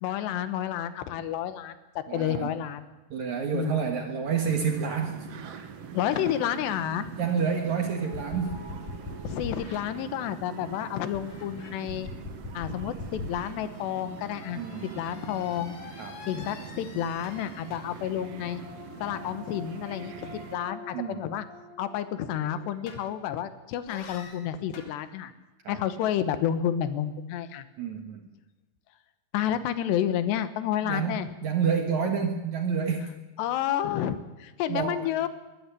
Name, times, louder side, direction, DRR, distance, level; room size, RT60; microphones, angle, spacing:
voice 1, 0.0-2.9 3.5-3.8 5.9-7.2 9.2-12.1 12.5-15.8 16.3-18.6 19.0-21.4 21.8-25.3 25.7-27.7 29.3-31.3 33.4-35.3, left 10 dB, 80° left, 12 dB, 3.1 m, -30 dB
voice 2, 2.1-2.5 3.1-5.3 5.5-5.7 7.2-8.6 14.6-15.1 16.0-16.2 20.9-21.2 25.6-25.8 27.8-28.2 30.8-33.1 34.7-35.1, right 6 dB, 55° right, 4 dB, 2.3 m, -29 dB
sound 1, 4.4-20.6, right 7 dB, 75° right, 1.4 m, -44 dB
sound 2, 8.0-10.7 11.1-23.4 23.9-25.0, left 3 dB, 55° left, 3.6 m, -44 dB
21.5 x 12.5 x 9.8 m, 1.1 s
omnidirectional pair, 5.0 m